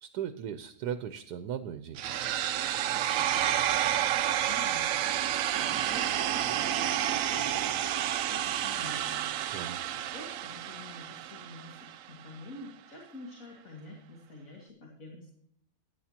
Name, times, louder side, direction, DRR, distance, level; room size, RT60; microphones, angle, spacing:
voice 1, 0.0-2.0 9.5-9.8, right 9 dB, 85° right, 11 dB, 1.2 m, -37 dB
sound 1, 2.0-12.0, right 11 dB, 70° right, 0.9 m, -30 dB
voice 2, 2.9-5.2 5.5-9.3 9.7-15.3, left 2 dB, 60° left, -1 dB, 2.5 m, -48 dB
14.5 x 10.5 x 2.8 m, 0.71 s
omnidirectional pair, 1.7 m